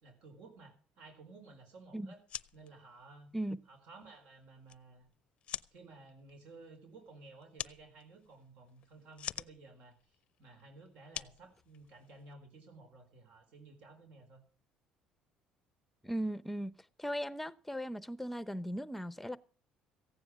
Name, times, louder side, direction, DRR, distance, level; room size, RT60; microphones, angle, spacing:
voice 1, 0.0-2.2 2.5-3.3 3.7-5.1 5.7-14.4, right 3 dB, 65° right, 4.2 m, -55 dB
sound 1, 2.1-12.3, left 10 dB, 50° left, 0.5 m, -48 dB
voice 2, 16.0-16.7 17.0-19.4, equal, 5° left, 0.8 m, -37 dB
15.0 x 9.8 x 6.1 m
cardioid pair, 105°, 2 cm